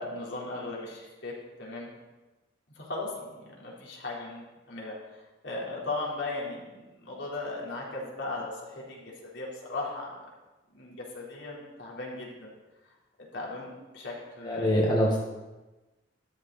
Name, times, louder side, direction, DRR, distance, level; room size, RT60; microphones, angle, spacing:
voice 1, 0.0-1.9 2.8-10.1 10.7-12.5 13.3-14.9, left 2 dB, 70° left, -4 dB, 4.1 m, -37 dB
voice 2, 14.4-15.2, equal, 25° left, -2 dB, 1.6 m, -24 dB
13.5 x 13.0 x 4.2 m, 1.1 s
head